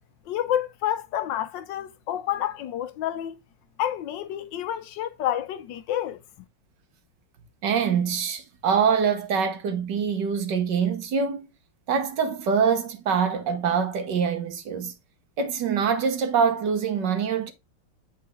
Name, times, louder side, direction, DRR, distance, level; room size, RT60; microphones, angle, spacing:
voice 1, 0.3-3.3 3.8-6.2, left 11 dB, 75° left, 1.3 m, -29 dB
voice 2, 7.6-11.5 11.9-14.9 15.4-17.5, right 6 dB, 70° right, 1.7 m, -24 dB
8.5 x 4.4 x 3.6 m
omnidirectional pair, 2.1 m